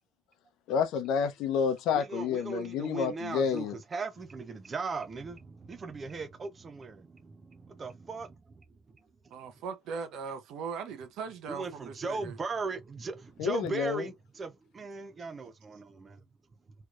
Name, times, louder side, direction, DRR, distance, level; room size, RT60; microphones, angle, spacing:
voice 1, 0.7-3.7 13.4-14.1, left 7 dB, 70° left, 0.7 m, -29 dB
voice 2, 1.9-8.4 11.5-16.2, right 4 dB, 30° right, 0.8 m, -38 dB
voice 3, 9.3-12.4, right 6 dB, 65° right, 0.9 m, -39 dB
3.3 x 3.0 x 2.5 m
cardioid pair, 105°, 0 cm